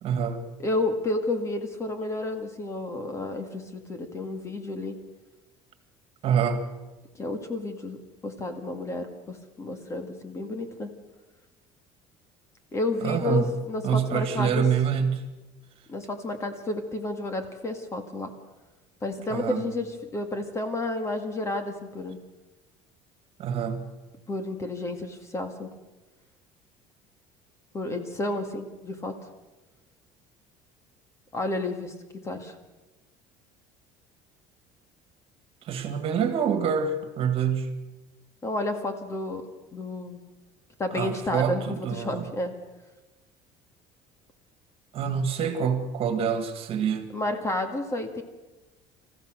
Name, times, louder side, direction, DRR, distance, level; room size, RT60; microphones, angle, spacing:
voice 1, 0.0-0.5 6.2-6.7 13.0-13.5 13.8-15.2 19.3-19.6 23.4-23.9 35.6-37.7 40.9-42.3 44.9-47.1, right 7 dB, 45° right, 9 dB, 2.2 m, -26 dB
voice 2, 0.6-5.0 7.2-10.9 12.7-14.6 15.9-18.3 19.0-22.2 24.3-25.7 27.7-29.1 31.3-31.9 32.2-32.6 38.4-39.4 39.7-40.2 40.8-42.5 47.1-48.2, left 2 dB, 20° left, 7 dB, 2.0 m, -31 dB
27.0 x 15.0 x 6.6 m, 1.1 s
cardioid pair, 150°, 13 cm